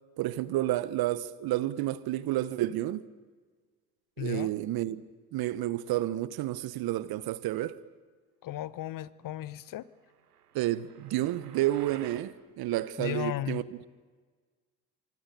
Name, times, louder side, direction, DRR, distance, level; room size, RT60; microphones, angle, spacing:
voice 1, 0.2-3.0 4.2-5.0 5.3-7.8 10.5-13.6, right 14 dB, 55° right, 1.1 m, -30 dB
voice 2, 4.2-4.5 8.4-9.9 13.0-13.6, left 13 dB, 45° left, 1.0 m, -35 dB
sound 1, 10.1-12.3, right 9 dB, 90° right, 1.2 m, -51 dB
25.5 x 24.5 x 6.8 m
hypercardioid pair, 60°, 45 cm